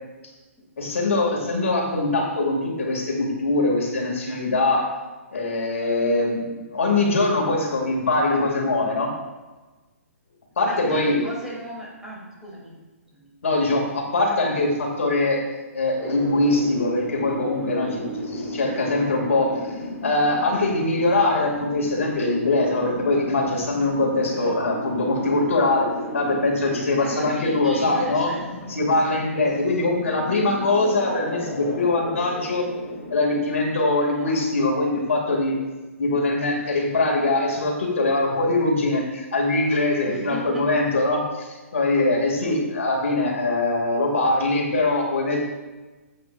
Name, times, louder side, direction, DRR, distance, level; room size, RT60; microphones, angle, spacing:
voice 1, 0.8-4.9 5.3-9.1 10.6-11.2 13.4-15.4 15.7-19.7 20.0-28.3 28.7-32.7 33.1-35.6 36.0-45.4, left 2 dB, 65° left, 0 dB, 2.5 m, -22 dB
voice 2, 10.6-12.8 13.1-13.3 24.3-24.9 27.0-28.7 29.0-29.2 29.5-29.9 33.5-34.3 40.0-40.8, equal, 5° right, -6 dB, 3.1 m, -38 dB
sound 1, 16.0-33.8, left 1 dB, 30° left, 3.4 m, -34 dB
17.0 x 8.7 x 2.6 m, 1.2 s
figure-of-eight pair, 125°, 8 cm